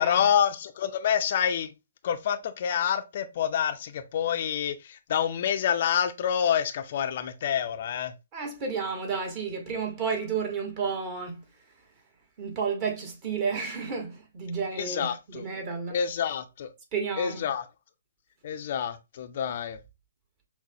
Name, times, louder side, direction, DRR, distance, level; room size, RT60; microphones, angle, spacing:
voice 1, 0.0-1.7 2.0-8.1 14.7-15.4 15.9-16.7 17.2-17.7 18.4-19.8, left 8 dB, 45° left, 0.4 m, -27 dB
voice 2, 8.3-11.4 12.4-16.0 16.9-17.5, right 5 dB, 30° right, 1.1 m, -31 dB
6.0 x 2.0 x 2.7 m
figure-of-eight pair, 130°, 0 cm